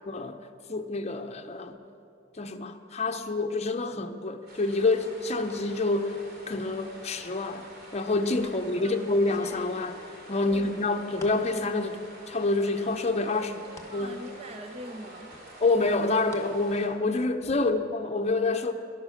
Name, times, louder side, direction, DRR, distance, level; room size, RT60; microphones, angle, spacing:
voice 1, 0.1-0.4 0.7-1.8 2.4-6.2 6.5-7.7 7.9-10.0 10.3-12.0 12.3-13.5 13.9-14.2 15.6-18.7, left 3 dB, 35° left, 7 dB, 0.7 m, -27 dB
sound 1, 4.5-16.9, right 1 dB, 55° right, 2.8 m, -48 dB
sound 2, 8.1-8.6 9.2-11.5 11.9-12.5 12.8-13.9 14.4-14.5 15.3-16.5 16.8-17.5, left 2 dB, 15° left, 1.4 m, -50 dB
voice 2, 8.4-9.2 10.4-11.0 13.7-15.4 17.6-17.8, right 1 dB, 30° right, 5 dB, 0.7 m, -43 dB
12.5 x 11.5 x 6.4 m, 2.6 s
head